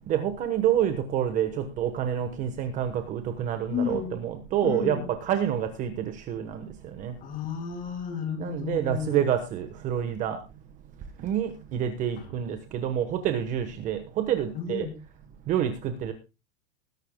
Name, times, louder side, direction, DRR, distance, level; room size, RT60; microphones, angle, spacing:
voice 1, 0.1-7.1 8.4-10.4 11.2-14.9 15.5-16.1, right 10 dB, 20° right, 1.1 m, -28 dB
voice 2, 3.7-4.2 4.6-5.0 7.2-9.2 12.2-12.3 14.6-15.0, left 7 dB, 20° left, 2.4 m, -32 dB
20.5 x 11.5 x 2.2 m
supercardioid pair, 175°, 38 cm